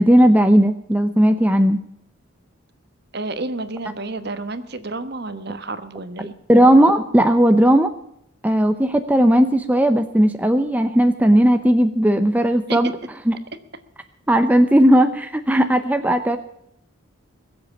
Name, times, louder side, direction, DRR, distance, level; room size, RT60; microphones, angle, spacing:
voice 1, 0.0-1.8 6.5-7.9 8.4-12.9 13.3-13.4 14.3-16.4, equal, 5° right, 7 dB, 0.6 m, -16 dB
voice 2, 3.1-6.3 12.7-12.8, right 2 dB, 50° right, 11 dB, 1.2 m, -30 dB
21.0 x 7.8 x 7.1 m, 0.75 s
head